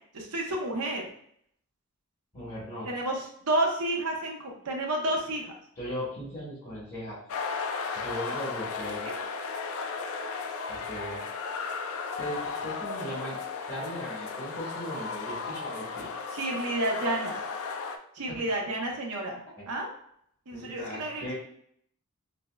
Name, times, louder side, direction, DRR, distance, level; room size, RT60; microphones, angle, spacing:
voice 1, 0.1-1.1 2.9-5.5 9.1-9.2 16.3-17.4 18.1-19.9 20.5-21.3, right 1 dB, 85° right, 0 dB, 0.8 m, -30 dB
voice 2, 2.3-2.9 5.8-7.2 7.9-9.1 10.7-11.2 12.2-13.4 13.7-16.1 18.3-18.4 19.6-19.7 20.5-21.3, equal, 35° left, -9 dB, 1.3 m, -38 dB
sound 1, 7.3-18.0, left 4 dB, 65° left, 0.3 m, -35 dB
5.0 x 2.0 x 2.2 m, 0.67 s
head